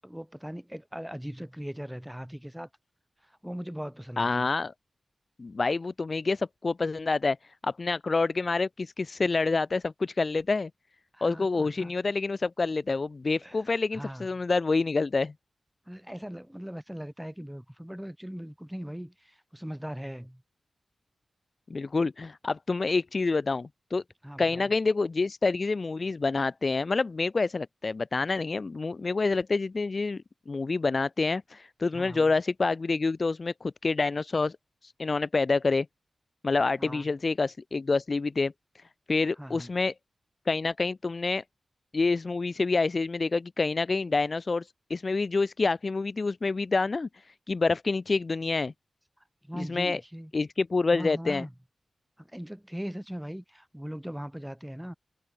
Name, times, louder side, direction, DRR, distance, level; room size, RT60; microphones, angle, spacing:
voice 1, 0.0-2.7 3.2-4.5 11.1-11.9 13.4-14.3 15.9-20.4 24.2-24.7 31.9-32.3 36.6-37.1 39.4-39.7 49.4-50.3 50.9-51.5 52.2-54.9, equal, 5° right, 7.6 m, -40 dB
voice 2, 4.2-4.7 5.4-7.4 7.6-10.7 11.2-15.3 21.7-24.0 24.4-34.5 34.8-35.9 36.4-38.5 39.1-39.9 40.5-41.4 41.9-47.1 47.5-48.7 49.6-50.0 50.3-51.5, left 3 dB, 50° left, 0.6 m, -27 dB
cardioid pair, 65°, 0 cm